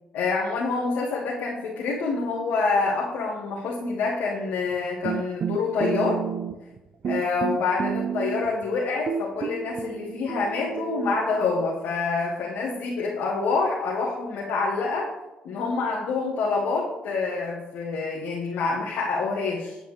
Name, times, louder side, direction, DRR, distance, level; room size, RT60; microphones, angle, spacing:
voice 1, 0.1-6.2 7.0-15.1 15.4-19.8, left 4 dB, 75° left, -5 dB, 1.7 m, -27 dB
sound 1, 5.0-6.8 7.0-8.6 9.1-11.7, right 8 dB, 50° right, 0.5 m, -31 dB
9.8 x 7.6 x 3.4 m, 1.0 s
supercardioid pair, 60°, 3 cm